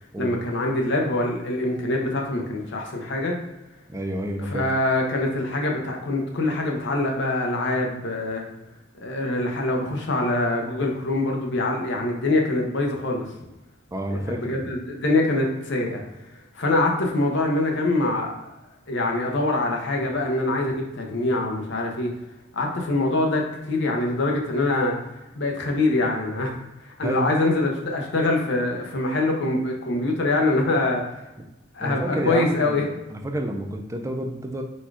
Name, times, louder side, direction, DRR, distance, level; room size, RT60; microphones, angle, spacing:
voice 1, 0.2-3.4 4.4-8.4 9.0-13.3 14.1-16.0 16.5-18.5 18.9-22.1 22.5-24.9 25.3-26.6 26.8-31.0 31.7-32.8, left 2 dB, 60° left, 1 dB, 0.8 m, -24 dB
voice 2, 3.9-4.7 13.9-14.7 27.0-27.5 31.8-32.8 33.1-34.6, right 1 dB, 15° right, 3 dB, 0.4 m, -29 dB
4.2 x 2.3 x 4.7 m, 0.97 s
head